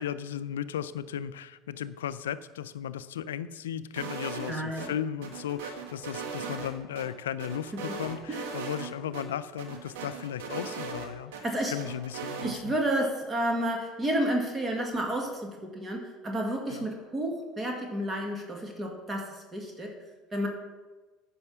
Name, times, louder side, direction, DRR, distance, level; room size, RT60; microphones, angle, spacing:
voice 1, 0.0-12.7 16.7-16.9, left 9 dB, 85° left, 15 dB, 0.4 m, -36 dB
sound 1, 4.0-4.9 5.2-7.0 7.4-8.9 9.1-9.2 9.6-11.4 11.8-12.5, right 5 dB, 80° right, 1.3 m, -38 dB
voice 2, 4.5-4.9 7.9-8.0 8.3-8.4 11.4-11.8 12.4-20.0 20.3-20.5, right 1 dB, 25° right, 1 dB, 1.8 m, -31 dB
9.7 x 5.6 x 6.0 m, 1.2 s
hypercardioid pair, 80°, 0 cm